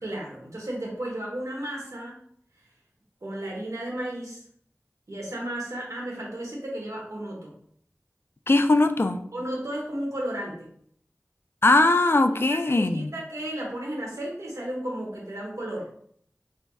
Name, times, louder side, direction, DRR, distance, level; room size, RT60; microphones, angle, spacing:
voice 1, 0.0-2.2 3.2-4.4 5.1-7.5 9.3-10.7 12.3-15.9, right 1 dB, 90° right, -3 dB, 1.1 m, -34 dB
voice 2, 8.5-9.2 11.6-13.1, left 2 dB, 50° left, 8 dB, 0.3 m, -20 dB
3.3 x 2.3 x 4.0 m, 0.64 s
wide cardioid pair, 50°, 5 cm